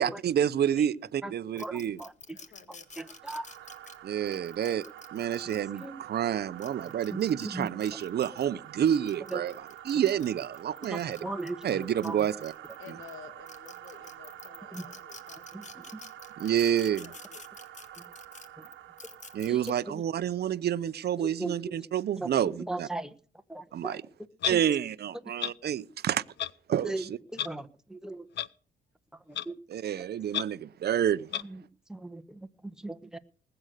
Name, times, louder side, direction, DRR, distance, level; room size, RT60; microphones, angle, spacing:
voice 1, 0.0-2.0 4.0-4.8 5.1-11.3 11.6-12.5 12.9-13.0 16.4-17.1 19.3-22.9 23.7-24.0 24.4-26.2 26.7-27.2 29.7-31.3, right 9 dB, 55° right, 0.7 m, -29 dB
sound 1, 1.6-5.9 6.4-8.5 8.9-13.1 13.5-19.7, left 4 dB, 35° left, 1.7 m, -49 dB
voice 2, 1.6-2.4 3.0-3.5 5.8-5.9 7.1-7.2 7.5-7.7 9.3-9.4 10.9-12.3 14.7-14.9 15.5-16.0 18.6-18.7 19.5-19.6 19.9-20.0 21.2-21.7 22.2-22.3 22.6-23.1 23.5-24.0 24.5-24.6 26.8-27.1 27.3-28.3 29.3-29.6 31.4-31.6 31.9-33.2, right 2 dB, 5° right, 1.2 m, -38 dB
voice 3, 2.3-3.1 12.8-15.7 16.3-17.4, left 6 dB, 80° left, 2.1 m, -52 dB
sound 2, 2.9-19.9, right 12 dB, 70° right, 1.2 m, -48 dB
Clock, 24.4-24.6 25.4-25.5 26.4-26.5 27.4-27.5 28.4-28.5 29.3-29.4 30.3-30.4 31.3-31.4, left 10 dB, 60° left, 0.7 m, -30 dB
20.0 x 7.9 x 6.6 m
cardioid pair, 90°, 20 cm